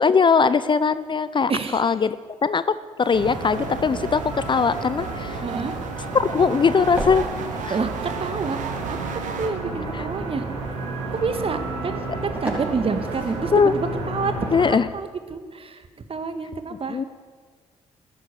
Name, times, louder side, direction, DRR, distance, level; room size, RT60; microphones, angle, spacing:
voice 1, 0.0-2.2 2.4-2.6 3.0-5.4 6.1-7.3 7.6-7.8 9.9-10.0 13.5-13.7 14.5-14.9 16.9-17.0, left 5 dB, 35° left, 15 dB, 0.6 m, -20 dB
voice 2, 1.5-1.9 5.4-5.8 7.7-8.6 8.9-9.0 9.4-10.4 11.1-17.0, right 4 dB, 40° right, 9 dB, 1.7 m, -28 dB
sound 1, 3.0-9.5, right 6 dB, 60° right, 1.5 m, -36 dB
sound 2, 3.1-14.7, right 2 dB, 80° right, 2.3 m, -32 dB
sound 3, 4.2-13.8, equal, 10° right, 5.0 m, -39 dB
13.0 x 12.5 x 8.4 m, 1.5 s
figure-of-eight pair, 40°, 15 cm